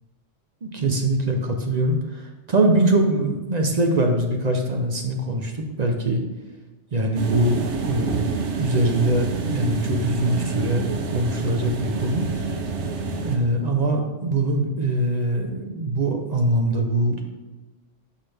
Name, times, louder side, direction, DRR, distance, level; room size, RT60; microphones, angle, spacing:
voice 1, 0.6-6.2 6.9-12.3 13.2-17.2, right 1 dB, 45° right, 3 dB, 0.6 m, -23 dB
sound 1, 7.2-13.4, right 4 dB, 70° right, 1.0 m, -28 dB
6.0 x 5.7 x 3.3 m, 1.1 s
omnidirectional pair, 1.3 m